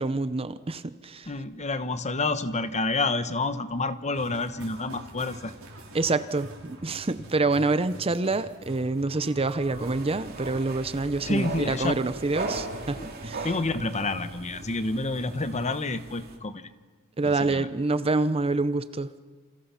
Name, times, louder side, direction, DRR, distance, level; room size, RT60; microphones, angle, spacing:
voice 1, 0.0-1.3 5.9-13.5 17.2-19.1, right 3 dB, 25° right, 13 dB, 0.7 m, -27 dB
voice 2, 1.3-5.5 11.2-12.0 13.0-13.1 13.4-16.7 17.2-17.7, left 3 dB, 30° left, 11 dB, 1.1 m, -29 dB
sound 1, 4.1-15.8, equal, 70° right, 4.4 m, -45 dB
sound 2, 9.6-16.4, right 3 dB, 45° right, 2.9 m, -39 dB
28.0 x 28.0 x 5.8 m, 1.5 s
head